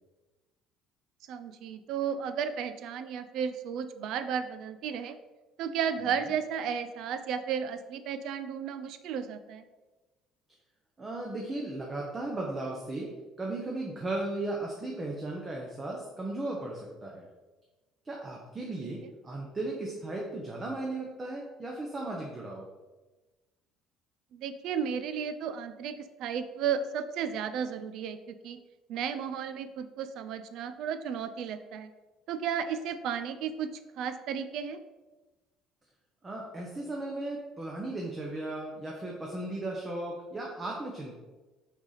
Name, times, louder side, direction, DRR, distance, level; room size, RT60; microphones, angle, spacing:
voice 1, 1.3-5.2 5.6-9.6 24.3-28.6 28.9-31.9 32.3-33.7 34.0-34.8, right 7 dB, 60° right, 10 dB, 0.4 m, -33 dB
voice 2, 11.0-17.3 18.0-22.7 36.2-41.2, right 2 dB, 20° right, -1 dB, 0.8 m, -36 dB
5.9 x 4.1 x 4.0 m, 1.2 s
cardioid pair, 155°, 0 cm